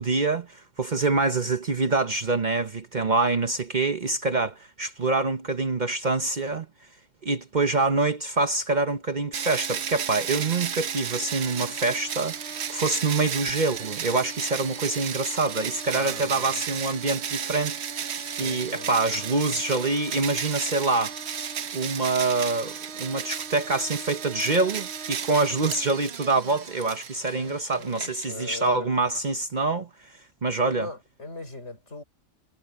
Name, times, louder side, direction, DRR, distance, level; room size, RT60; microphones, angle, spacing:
voice 1, 0.0-6.7 7.2-17.8 18.4-21.1 21.7-29.9 30.4-30.9, right 3 dB, 40° right, 1.0 m, -25 dB
sound 1, 9.3-28.7, right 8 dB, 65° right, 1.1 m, -34 dB
voice 2, 15.9-16.6 18.2-18.9 27.2-28.9 30.7-32.0, left 3 dB, 70° left, 6.4 m, -40 dB
omnidirectional pair, 1.2 m